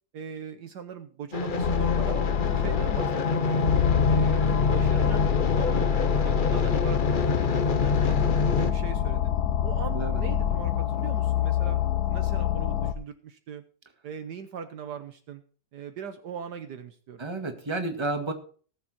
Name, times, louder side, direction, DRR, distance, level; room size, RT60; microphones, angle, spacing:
voice 1, 0.1-2.3 2.5-3.7 4.1-8.2 8.5-9.3 9.6-11.8 12.1-13.6 14.0-15.4 15.7-17.3, right 7 dB, 65° right, 8 dB, 1.5 m, -40 dB
sound 1, 1.3-8.7, left 3 dB, 40° left, 0.7 m, -26 dB
sound 2, 1.6-12.9, left 9 dB, 65° left, 1.3 m, -26 dB
voice 2, 17.2-18.3, right 2 dB, 15° right, 5 dB, 1.8 m, -31 dB
18.5 x 7.3 x 4.3 m, 0.42 s
omnidirectional pair, 1.9 m